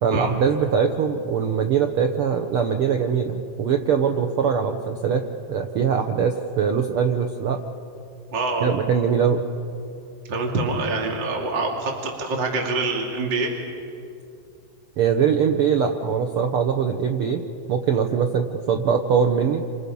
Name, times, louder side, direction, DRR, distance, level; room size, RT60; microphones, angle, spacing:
voice 1, 0.0-5.2 5.5-7.6 8.6-9.4 15.0-17.4 17.7-19.6, right 7 dB, 85° right, 5 dB, 1.2 m, -22 dB
voice 2, 8.3-8.7 10.3-13.5, right 3 dB, 35° right, 0 dB, 2.6 m, -25 dB
30.0 x 27.0 x 5.4 m, 2.6 s
omnidirectional pair, 3.9 m